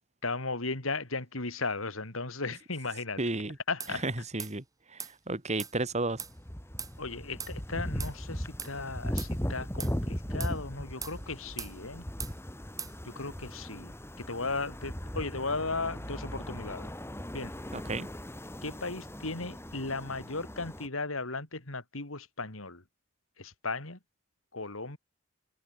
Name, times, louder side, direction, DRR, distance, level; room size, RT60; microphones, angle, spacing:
voice 1, 0.2-3.2 3.7-4.0 7.0-12.1 13.0-16.9 17.3-17.5 18.6-22.8 23.4-24.0 24.5-25.0, left 3 dB, 80° left, 3.6 m, -36 dB
voice 2, 3.2-3.6 3.9-6.2 17.7-18.1, right 2 dB, 35° right, 2.3 m, -33 dB
sound 1, 3.8-3.9 4.4-4.5 5.0-5.1 5.6-5.7 6.2-6.3 6.8-6.9 7.4-7.5 8.0-8.1 8.6-8.7 9.2-9.3 9.8-10.0 10.4-10.6 11.0-11.2 11.6-11.7 12.2-12.3 12.8-12.9, right 6 dB, 15° right, 1.1 m, -39 dB
sound 2, 6.2-20.9, equal, 10° left, 2.8 m, -38 dB
head